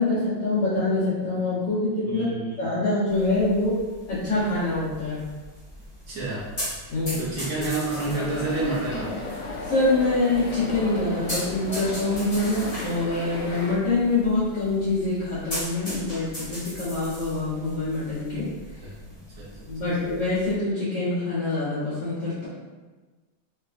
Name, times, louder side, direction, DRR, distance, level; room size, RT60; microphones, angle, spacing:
voice 1, 0.0-2.3 2.6-3.8 4.1-5.2 6.9-7.2 9.7-18.5 19.7-22.5, left 2 dB, 60° left, -13 dB, 1.5 m, -25 dB
voice 2, 2.0-2.8 6.1-6.5 7.2-9.1 18.8-19.5 19.8-19.9, right 2 dB, 70° right, -8 dB, 0.7 m, -29 dB
sound 1, 3.1-20.5, equal, 40° left, 0.5 m, -39 dB
sound 2, 7.8-13.7, left 2 dB, 75° left, 1.5 m, -35 dB
3.3 x 2.9 x 2.5 m, 1.3 s
omnidirectional pair, 2.2 m